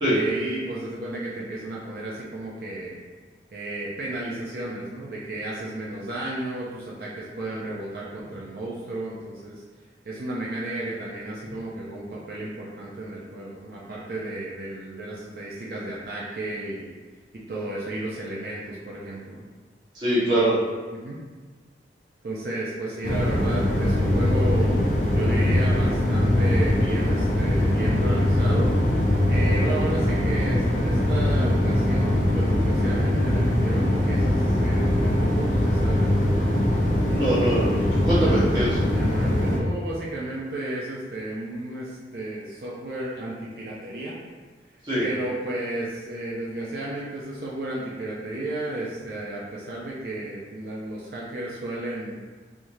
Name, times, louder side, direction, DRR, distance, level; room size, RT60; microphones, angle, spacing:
voice 1, 0.1-3.0 3.5-9.6 10.1-16.9 17.3-19.4 20.3-20.4 20.9-21.2 22.2-28.8 29.3-36.7 38.1-44.2 45.0-52.1, right 1 dB, 55° right, -6 dB, 0.5 m, -33 dB
voice 2, 19.9-20.5 37.1-38.7 44.9-45.1, right 1 dB, 25° right, -11 dB, 1.1 m, -23 dB
sound 1, 23.0-39.6, left 1 dB, 40° left, 0.6 m, -22 dB
3.5 x 3.1 x 2.6 m, 1.4 s
head